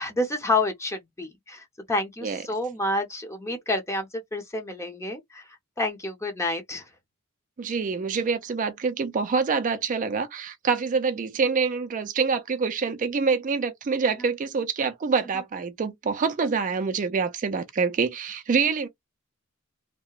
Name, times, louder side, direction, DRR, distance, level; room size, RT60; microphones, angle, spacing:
voice 1, 0.0-5.4 5.8-6.8, left 2 dB, 15° left, 0.6 m, -29 dB
voice 2, 7.6-18.9, right 5 dB, 40° right, 0.4 m, -26 dB
2.8 x 2.1 x 2.2 m
head